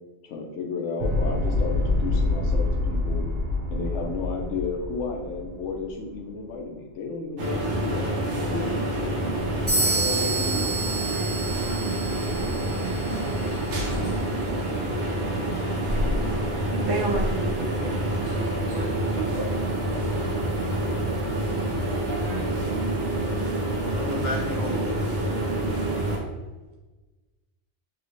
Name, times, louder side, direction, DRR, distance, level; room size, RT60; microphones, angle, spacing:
voice 1, 0.2-3.3 3.7-10.8, left 4 dB, 90° left, 2 dB, 0.9 m, -33 dB
sound 1, 1.0-6.2, left 2 dB, 60° right, 0.8 m, -26 dB
sound 2, 7.4-26.2, right 1 dB, 75° right, 1.1 m, -27 dB
sound 3, 9.7-13.4, right 3 dB, 15° right, 0.9 m, -29 dB
voice 2, 16.9-18.0 18.3-18.9 19.2-19.5 19.8-19.9, right 3 dB, 40° right, -1 dB, 0.3 m, -31 dB
voice 3, 23.9-25.1, left 2 dB, 55° left, -3 dB, 0.6 m, -33 dB
3.6 x 2.9 x 2.5 m, 1.2 s
omnidirectional pair, 1.2 m